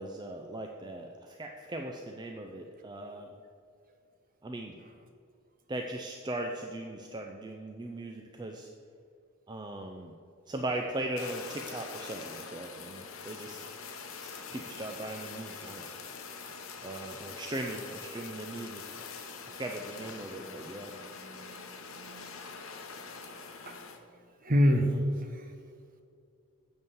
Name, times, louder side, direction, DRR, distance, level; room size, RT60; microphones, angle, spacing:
voice 1, 0.0-3.3 4.4-4.8 5.7-8.7 9.5-10.1 10.5-13.7 14.2-15.9 16.8-18.8 19.5-20.9 24.7-25.0, right 1 dB, 20° right, 3 dB, 0.4 m, -39 dB
Fire, 11.2-24.0, left 5 dB, 65° left, 0.9 m, -44 dB
voice 2, 20.3-22.4 23.6-23.8 24.4-24.9 25.2-25.5, equal, 40° right, 5 dB, 0.9 m, -30 dB
7.9 x 5.5 x 7.0 m, 2.4 s
head